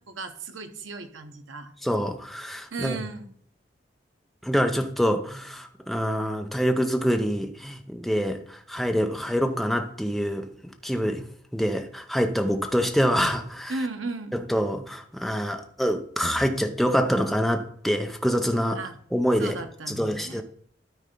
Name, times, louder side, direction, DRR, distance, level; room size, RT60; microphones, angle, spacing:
voice 1, 0.1-1.7 2.7-3.4 13.7-14.4 18.7-18.9 19.4-20.4, right 3 dB, 85° right, 7 dB, 1.0 m, -35 dB
voice 2, 1.8-3.0 4.4-11.3 11.5-13.7 14.5-18.8 19.1-19.5 19.9-20.4, equal, ahead, 4 dB, 0.7 m, -26 dB
12.5 x 4.4 x 3.8 m, 0.63 s
head